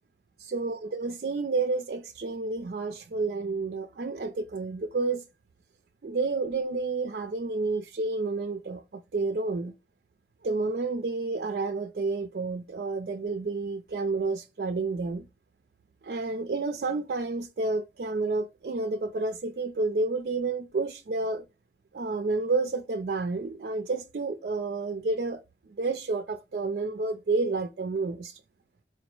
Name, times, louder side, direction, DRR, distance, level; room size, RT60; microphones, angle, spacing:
voice 1, 0.4-5.2 6.0-9.7 10.4-15.3 16.0-21.4 21.9-25.4 25.7-28.4, right 3 dB, 55° right, 0.4 m, -30 dB
4.4 x 2.0 x 4.5 m
head